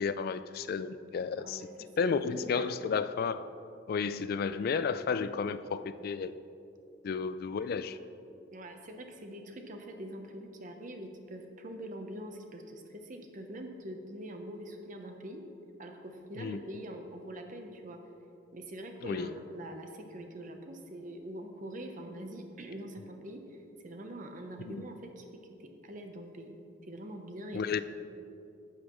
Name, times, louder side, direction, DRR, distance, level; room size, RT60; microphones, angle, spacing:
voice 1, 0.0-1.7 2.0-3.4 3.9-6.3 7.0-8.0 16.4-16.6 19.0-19.3 24.7-24.9 27.5-27.8, left 5 dB, 50° left, 13 dB, 0.3 m, -32 dB
voice 2, 1.3-1.7 2.0-2.7 8.5-15.4 15.8-18.0 18.5-23.4 23.8-25.2 25.8-26.6 26.9-27.6, right 1 dB, 40° right, 4 dB, 0.8 m, -44 dB
11.0 x 8.3 x 3.1 m, 2.7 s
head